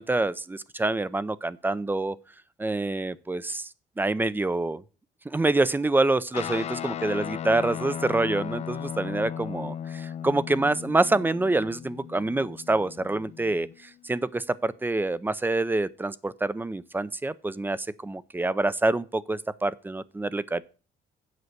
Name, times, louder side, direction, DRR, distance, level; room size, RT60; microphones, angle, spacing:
voice 1, 0.0-2.2 2.6-3.7 4.0-4.8 5.3-20.6, right 2 dB, 10° right, 0.5 m, -26 dB
Guitar, 6.3-14.0, left 9 dB, 40° left, 0.5 m, -36 dB
8.1 x 5.6 x 7.9 m
cardioid pair, 110°, 17 cm